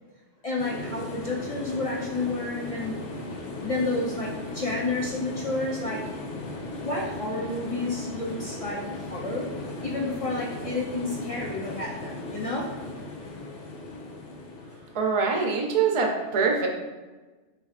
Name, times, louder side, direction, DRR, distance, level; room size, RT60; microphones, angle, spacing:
voice 1, 0.4-3.0 3.6-6.0 6.8-8.8 9.1-9.5 9.8-12.7, left 2 dB, 40° left, -4 dB, 0.5 m, -30 dB
sound 1, 0.6-15.3, left 2 dB, 75° left, 1.0 m, -37 dB
voice 2, 14.9-16.7, right 5 dB, 45° right, 2 dB, 0.4 m, -24 dB
5.7 x 2.7 x 2.5 m, 1.2 s
omnidirectional pair, 1.3 m